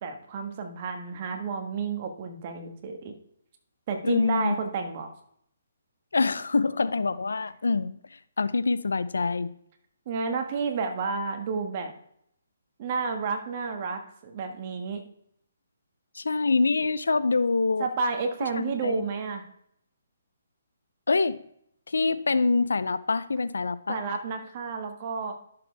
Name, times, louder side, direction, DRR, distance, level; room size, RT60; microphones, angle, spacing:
voice 1, 0.0-3.2 3.9-5.1 10.0-11.9 12.8-15.0 17.8-19.4 23.9-25.3, right 4 dB, 40° right, 5 dB, 1.5 m, -31 dB
voice 2, 4.0-4.6 6.1-7.9 8.4-9.5 16.2-17.9 18.6-19.0 21.1-21.4 21.9-24.0, left 3 dB, 85° left, 15 dB, 0.6 m, -25 dB
12.0 x 6.8 x 3.5 m, 0.71 s
hypercardioid pair, 150°, 0 cm